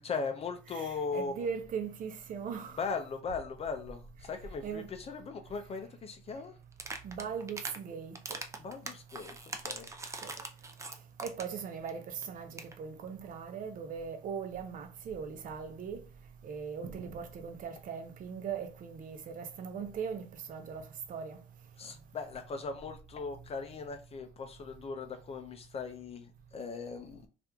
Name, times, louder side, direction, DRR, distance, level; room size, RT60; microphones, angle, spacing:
voice 1, 0.0-1.5 2.8-6.5 8.6-9.4 9.6-9.9 21.8-27.3, left 4 dB, 35° left, 0.4 m, -39 dB
voice 2, 0.7-2.8 4.6-4.9 7.0-8.4 10.2-10.4 11.2-16.0 16.4-21.4, right 6 dB, 55° right, 0.7 m, -39 dB
sound 1, 6.7-7.8 8.1-11.6 11.9-12.0 12.2-12.3 12.5-12.7, right 3 dB, 15° right, 0.5 m, -41 dB
2.9 x 2.5 x 3.4 m
cardioid pair, 110°, 17 cm